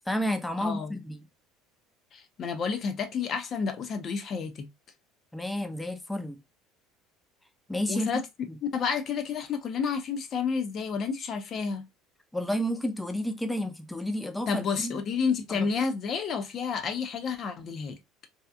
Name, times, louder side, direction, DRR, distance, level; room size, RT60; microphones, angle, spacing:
voice 1, 0.1-1.2 5.3-6.4 7.7-8.1 8.5-8.6 12.3-15.0 15.5-15.6, equal, 5° left, 0.6 m, -31 dB
voice 2, 0.6-1.0 2.1-4.7 7.9-8.2 8.7-11.9 14.5-18.0, left 5 dB, 45° left, 0.6 m, -30 dB
2.8 x 2.4 x 2.3 m
hypercardioid pair, 85°, 0 cm